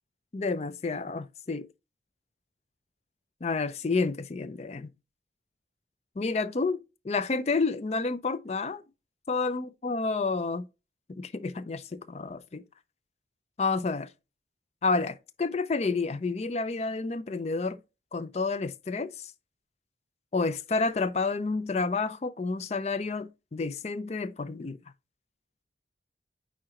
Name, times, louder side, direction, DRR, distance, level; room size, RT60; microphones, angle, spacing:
voice 1, 0.3-1.7 3.4-4.9 6.2-6.8 7.0-8.8 9.3-10.7 11.1-12.6 13.6-14.1 14.8-17.8 18.1-19.3 20.3-24.8, left 4 dB, 35° left, 0.4 m, -30 dB
9.2 x 3.8 x 2.9 m
head